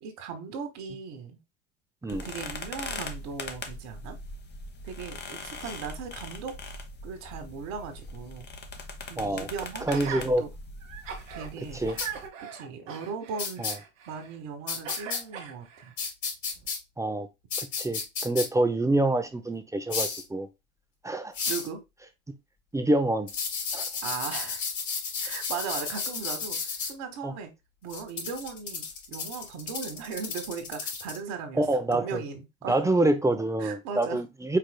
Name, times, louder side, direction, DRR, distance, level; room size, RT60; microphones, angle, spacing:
voice 1, 0.0-1.4 2.1-4.2 4.8-6.6 7.0-8.5 9.1-10.5 11.3-11.8 12.4-13.6 14.1-15.9 21.5-21.8 24.0-24.6 25.2-27.5 27.8-31.6 31.9-32.9 33.6-34.2, right 6 dB, 60° right, 1.4 m, -38 dB
sound 1, 2.1-12.3, left 3 dB, 25° left, 1.1 m, -41 dB
voice 2, 9.2-9.5 9.9-10.4 11.7-12.0 13.6-13.7 17.0-17.3 17.6-20.5 21.0-21.3 22.7-23.3 23.7-23.9 27.2-27.3 31.6-32.2 32.7-34.6, right 2 dB, 10° right, 0.6 m, -26 dB
Gasp, 9.9-10.3 10.8-11.5 11.9-14.4 14.8-15.9 16.6-16.7, right 7 dB, 85° right, 1.2 m, -40 dB
sound 2, 12.0-12.1 13.4-13.7 14.7-15.2 16.0-16.8 17.5-18.5 19.9-20.2 21.3-21.7 23.3-26.9 27.9-31.2, left 5 dB, 45° left, 3.0 m, -32 dB
4.9 x 4.3 x 2.2 m
hypercardioid pair, 80°, 38 cm